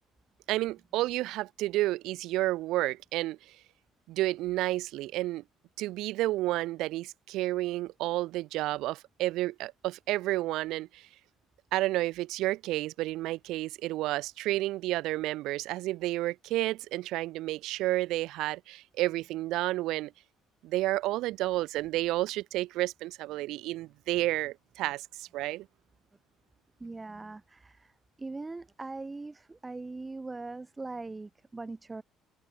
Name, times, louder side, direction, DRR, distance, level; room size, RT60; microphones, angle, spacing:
voice 1, 0.5-3.4 4.1-5.4 5.8-11.1 11.7-20.1 20.6-25.7, right 17 dB, 75° right, 2.1 m, -31 dB
voice 2, 26.8-32.0, right 3 dB, 20° right, 2.0 m, -41 dB
supercardioid pair, 85°, 0 cm